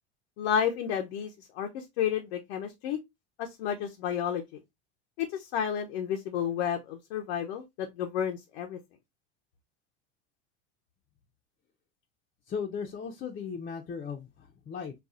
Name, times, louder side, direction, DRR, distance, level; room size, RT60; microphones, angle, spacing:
voice 1, 0.4-3.0 3.4-4.4 5.2-8.8, left 8 dB, 70° left, 0.7 m, -31 dB
voice 2, 12.5-14.9, left 6 dB, 30° left, 0.6 m, -37 dB
4.1 x 2.3 x 2.4 m
supercardioid pair, 105°, 32 cm